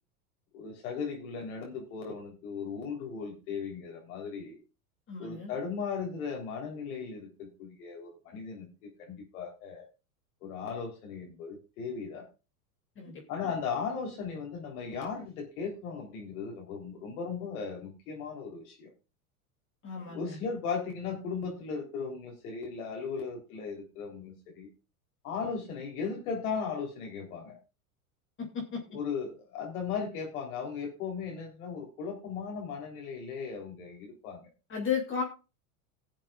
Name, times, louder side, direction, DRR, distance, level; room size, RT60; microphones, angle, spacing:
voice 1, 0.5-4.6 5.2-9.8 10.4-12.3 13.3-18.9 20.0-24.7 25.2-27.6 28.9-34.4, left 5 dB, 70° left, 0 dB, 3.8 m, -37 dB
voice 2, 5.1-5.5 13.0-13.5 19.8-20.4 28.4-28.8 34.7-35.2, left 6 dB, 25° left, 3 dB, 2.7 m, -34 dB
20.0 x 7.5 x 2.4 m, 0.31 s
hypercardioid pair, 115°, 45 cm